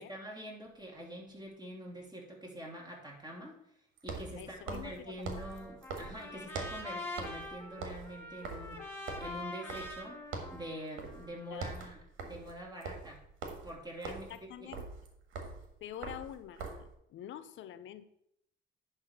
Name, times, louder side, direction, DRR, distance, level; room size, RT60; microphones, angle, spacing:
voice 1, 0.0-3.5 4.0-8.8 9.2-10.2 10.5-13.2 13.6-14.7, equal, 20° right, -2 dB, 2.9 m, -45 dB
sound 1, 0.7-0.8 4.0-6.9 7.2-7.5 7.7-10.1 10.3-10.6 11.0-11.3 11.5-16.9, right 4 dB, 80° right, 1.7 m, -43 dB
voice 2, 4.4-5.1 11.5-11.8 14.1-14.9 15.8-18.1, left 10 dB, 75° left, 13 dB, 0.6 m, -46 dB
Trumpet, 5.3-11.6, left 2 dB, 10° left, 1.8 m, -44 dB
10.5 x 3.5 x 5.9 m, 0.74 s
cardioid pair, 90°, 20 cm